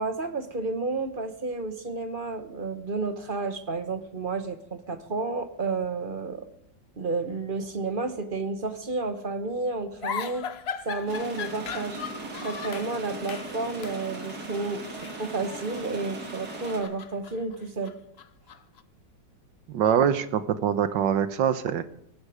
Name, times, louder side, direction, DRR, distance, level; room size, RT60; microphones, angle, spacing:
voice 1, 0.0-6.5 7.0-10.5 10.8-12.0 12.4-14.9 15.2-17.9, right 3 dB, 35° right, 9 dB, 1.2 m, -31 dB
sound 1, 10.0-12.9 13.3-13.5 13.8-14.0 14.9-16.1 16.4-18.8, left 7 dB, 55° left, 0.7 m, -38 dB
sound 2, 11.1-16.8, right 2 dB, 55° right, 3.1 m, -38 dB
voice 2, 19.7-21.8, right 8 dB, 80° right, 12 dB, 1.7 m, -24 dB
18.5 x 15.0 x 5.0 m, 0.76 s
omnidirectional pair, 2.0 m